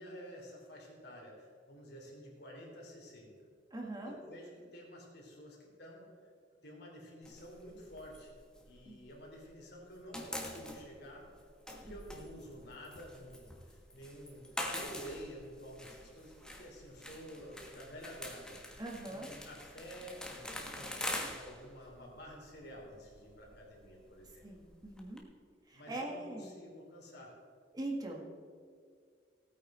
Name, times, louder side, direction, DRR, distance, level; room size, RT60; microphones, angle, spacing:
voice 1, 0.0-3.5 4.0-6.3 6.6-8.4 8.6-11.3 11.7-18.6 19.1-24.5 25.7-27.3, equal, 60° left, -1 dB, 3.2 m, -50 dB
voice 2, 3.7-4.2 8.9-9.0 11.9-12.0 18.8-19.3 24.4-25.2 25.7-26.5 27.7-28.3, right 2 dB, 20° right, -1 dB, 1.6 m, -41 dB
sound 1, 7.2-9.5 9.8-25.2, left 1 dB, 5° left, 1.2 m, -45 dB
16.5 x 9.1 x 4.3 m, 2.1 s
head